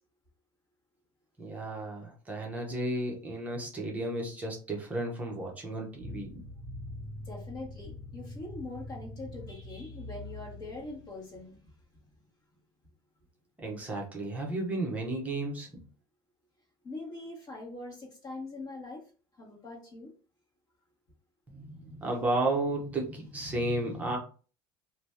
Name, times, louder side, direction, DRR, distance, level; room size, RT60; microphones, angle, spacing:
voice 1, 1.4-6.4 13.6-15.7 21.5-24.2, right 2 dB, 15° right, -1 dB, 0.8 m, -33 dB
sound 1, 6.0-11.2, left 1 dB, 55° left, 1.6 m, -43 dB
voice 2, 7.2-11.6 16.8-19.0 19.4-20.1, left 2 dB, 35° left, -3 dB, 1.5 m, -43 dB
2.9 x 2.6 x 3.3 m, 0.37 s
cardioid pair, 170°, 11 cm